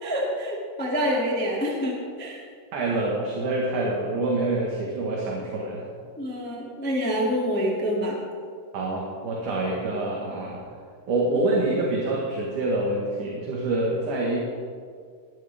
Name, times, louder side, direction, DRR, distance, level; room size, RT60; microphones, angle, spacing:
voice 1, 0.0-2.4 6.2-8.2, equal, 5° left, -4 dB, 1.1 m, -27 dB
voice 2, 2.7-5.8 8.7-10.6 11.1-14.4, right 2 dB, 55° right, -3 dB, 2.7 m, -26 dB
18.5 x 12.5 x 3.6 m, 2.1 s
omnidirectional pair, 5.0 m